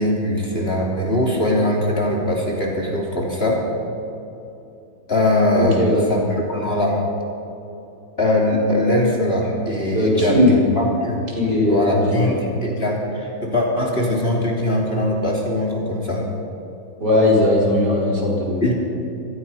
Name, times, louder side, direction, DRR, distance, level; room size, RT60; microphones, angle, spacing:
voice 1, 0.0-3.6 5.1-5.8 6.1-7.0 8.2-11.2 11.7-16.2 18.6-18.7, left 1 dB, 30° left, -2 dB, 3.3 m, -21 dB
voice 2, 5.5-6.1 9.9-10.6 11.3-12.4 17.0-18.7, left 1 dB, 55° right, -3 dB, 5.3 m, -18 dB
25.0 x 20.0 x 5.7 m, 2.9 s
omnidirectional pair, 2.2 m